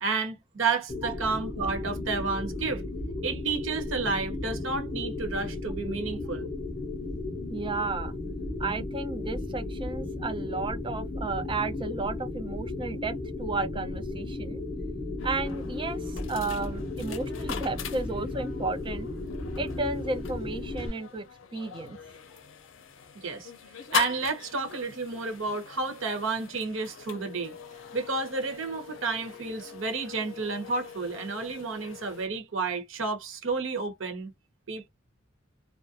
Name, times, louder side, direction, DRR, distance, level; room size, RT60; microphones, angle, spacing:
voice 1, 0.0-2.8 3.2-6.5 23.1-23.5 23.9-27.5 27.9-34.3 34.7-34.9, right 4 dB, 80° right, 1.0 m, -31 dB
sound 1, 0.9-20.9, left 2 dB, 25° left, 0.6 m, -35 dB
voice 2, 7.5-8.1 8.6-14.6 15.2-19.1 19.6-21.3 21.5-22.0, right 3 dB, 25° right, 0.5 m, -33 dB
sound 2, 15.2-32.3, left 7 dB, 75° left, 0.5 m, -41 dB
2.5 x 2.1 x 2.6 m
head